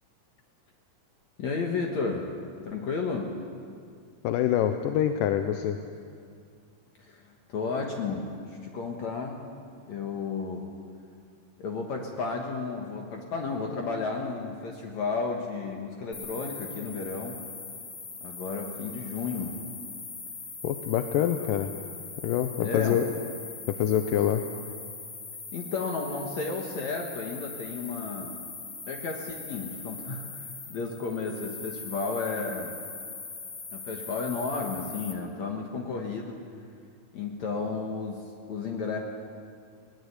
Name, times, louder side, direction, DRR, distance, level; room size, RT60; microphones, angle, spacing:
voice 1, 1.4-2.3 2.6-3.4 7.0-9.5 9.9-10.7 11.6-17.4 18.2-19.6 21.4-21.5 22.6-23.0 25.5-28.4 28.9-32.8 33.7-36.5 37.1-39.0, left 4 dB, 60° left, 1 dB, 2.6 m, -33 dB
voice 2, 4.2-5.8 20.6-21.7 22.2-23.1 23.7-24.4, left 10 dB, 80° left, 7 dB, 2.4 m, -25 dB
sound 1, 16.1-35.1, left 4 dB, 40° left, 2.5 m, -41 dB
21.0 x 19.0 x 8.2 m, 2.3 s
omnidirectional pair, 3.9 m